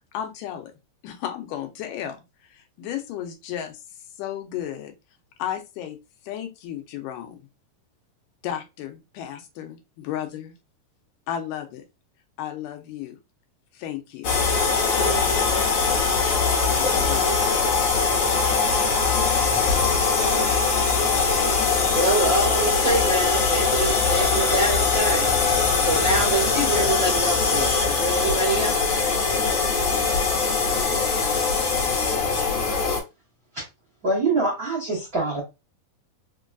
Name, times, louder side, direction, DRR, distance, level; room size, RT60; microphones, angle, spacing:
voice 1, 0.1-0.7 1.0-2.2 2.5-3.8 4.2-4.9 5.4-6.0 6.2-7.4 8.4-10.5 11.3-11.8 12.4-13.2 13.7-14.3 16.7-17.3, left 10 dB, 85° left, 2.2 m, -33 dB
sound 1, 14.2-33.0, left 4 dB, 65° left, 2.1 m, -21 dB
voice 2, 21.9-25.3 25.8-29.0, right 2 dB, 45° right, 1.1 m, -25 dB
voice 3, 34.0-35.4, right 3 dB, 85° right, 0.8 m, -24 dB
5.1 x 2.3 x 2.4 m
omnidirectional pair, 3.8 m